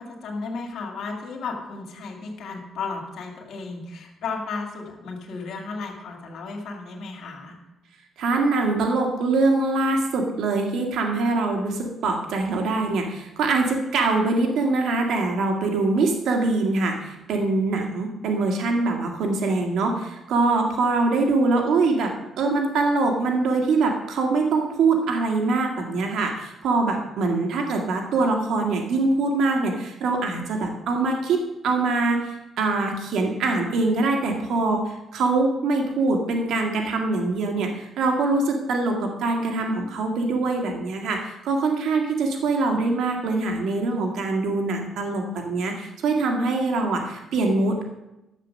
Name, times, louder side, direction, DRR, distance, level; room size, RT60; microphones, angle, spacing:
voice 1, 0.0-7.6, left 4 dB, 70° left, 1 dB, 2.2 m, -34 dB
voice 2, 8.2-47.8, right 3 dB, 80° right, 2 dB, 1.8 m, -23 dB
11.5 x 7.5 x 6.5 m, 0.95 s
cardioid pair, 90°, 0 cm